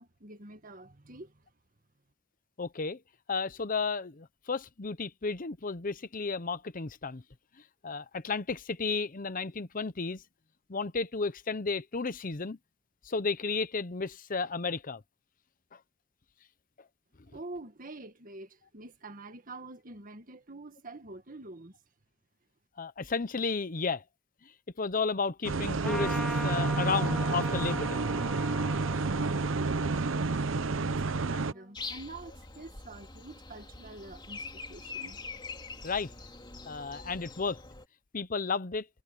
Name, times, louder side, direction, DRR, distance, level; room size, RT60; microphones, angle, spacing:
voice 1, 0.0-1.4 17.3-21.8 30.0-35.2, right 2 dB, 45° right, 1.9 m, -47 dB
voice 2, 2.6-3.0 3.3-7.2 7.8-10.2 10.7-12.6 13.0-15.0 15.7-15.8 22.8-24.0 24.8-28.1 35.8-36.1 36.7-37.6 38.1-38.9, left 4 dB, 45° left, 0.8 m, -33 dB
sound 1, 25.4-31.5, right 3 dB, 80° right, 0.7 m, -30 dB
Trumpet, 25.8-31.7, equal, ahead, 0.5 m, -41 dB
Breathing, 31.7-37.8, left 4 dB, 25° left, 3.1 m, -44 dB
head